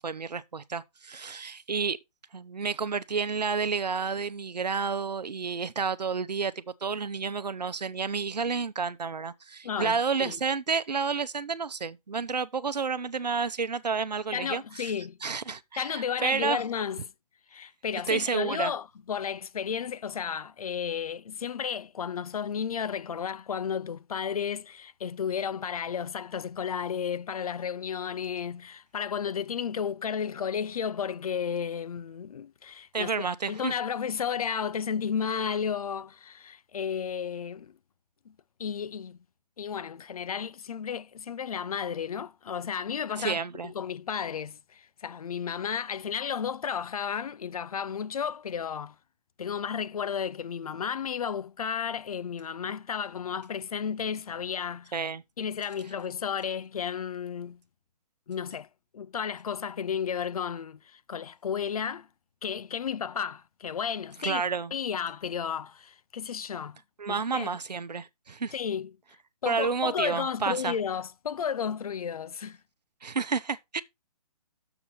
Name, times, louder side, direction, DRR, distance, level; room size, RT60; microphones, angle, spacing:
voice 1, 0.0-2.0 2.3-14.9 15.2-16.6 18.1-18.7 32.9-33.7 43.2-43.7 54.9-55.2 64.2-64.7 67.0-68.5 69.5-70.8 73.0-73.8, right 5 dB, 85° right, 0.8 m, -30 dB
voice 2, 9.6-10.4 14.3-15.2 15.8-17.1 17.5-33.1 33.5-37.8 38.3-38.4 38.6-39.2 39.6-43.4 43.6-49.0 49.4-54.9 55.4-57.6 58.3-58.7 58.9-62.1 62.4-64.4 64.7-66.8 67.1-67.5 68.5-68.9 69.4-72.6, left 7 dB, 65° left, 0.6 m, -33 dB
6.9 x 6.9 x 4.2 m
figure-of-eight pair, 145°, 21 cm